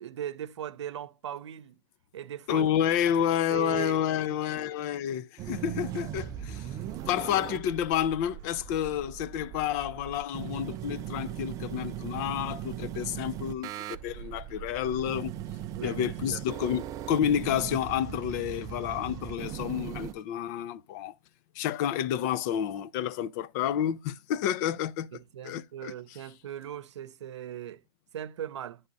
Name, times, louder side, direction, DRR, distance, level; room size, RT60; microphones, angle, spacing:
voice 1, 0.0-1.8 2.1-2.7 3.1-3.2 3.5-4.6 15.7-16.4 25.1-27.8 28.1-28.8, right 10 dB, 80° right, 0.7 m, -39 dB
voice 2, 2.5-6.7 7.1-15.3 15.8-21.1 21.6-25.1 25.4-25.9, left 10 dB, 40° left, 0.5 m, -30 dB
sound 1, 5.4-20.1, right 11 dB, 25° right, 0.4 m, -39 dB
9.5 x 3.5 x 4.0 m
hypercardioid pair, 140°, 15 cm